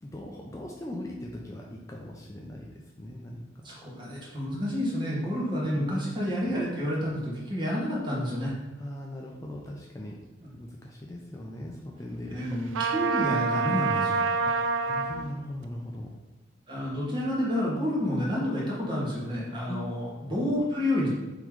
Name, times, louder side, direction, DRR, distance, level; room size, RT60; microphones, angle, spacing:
voice 1, 0.0-2.7 3.0-3.7 5.6-5.9 8.8-10.2 10.5-12.6 14.5-16.1 19.7-19.8, left 1 dB, 15° left, -2 dB, 0.4 m, -40 dB
voice 2, 3.6-8.5 10.4-10.5 12.3-14.3 16.7-21.1, equal, 25° right, -6 dB, 1.3 m, -29 dB
Trumpet, 12.7-15.3, right 5 dB, 80° right, 0.4 m, -27 dB
3.8 x 3.0 x 4.6 m, 1.2 s
head